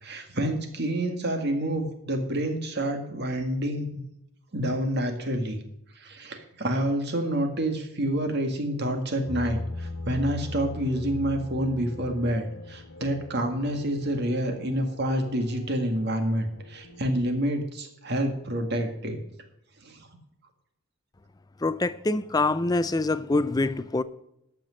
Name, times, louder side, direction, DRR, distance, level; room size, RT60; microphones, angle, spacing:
voice 1, 0.0-4.0 4.5-5.6 6.0-19.2 19.8-20.1, right 1 dB, 50° right, 1.8 m, -28 dB
sound 1, 9.3-17.2, left 2 dB, 75° left, 1.2 m, -40 dB
voice 2, 21.6-24.0, left 2 dB, 20° left, 0.4 m, -25 dB
13.5 x 6.0 x 6.3 m
head